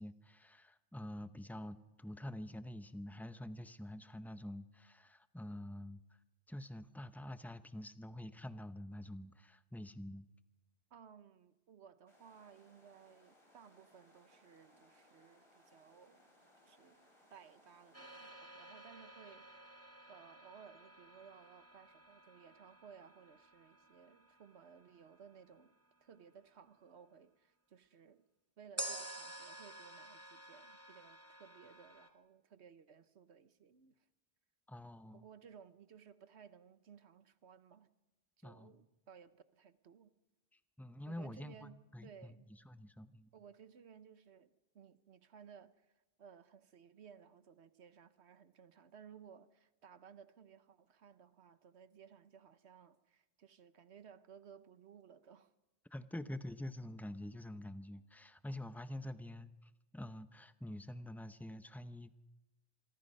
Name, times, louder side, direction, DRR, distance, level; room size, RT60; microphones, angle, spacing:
voice 1, 0.0-6.0 6.5-10.3 34.7-35.2 38.4-38.7 40.8-42.3 42.6-43.3 55.9-62.1, left 1 dB, ahead, 12 dB, 0.6 m, -47 dB
voice 2, 10.9-16.2 16.6-19.5 20.1-25.7 26.0-28.2 28.6-34.1 35.1-37.9 38.4-40.1 41.1-42.5 43.3-55.5, right 7 dB, 75° right, 13 dB, 1.3 m, -59 dB
sound 1, 12.1-18.3, left 1 dB, 25° left, 3.7 m, -68 dB
sound 2, 17.9-25.9 28.8-32.1, right 1 dB, 15° right, 1.4 m, -51 dB
26.0 x 23.0 x 5.5 m, 1.0 s
omnidirectional pair, 1.1 m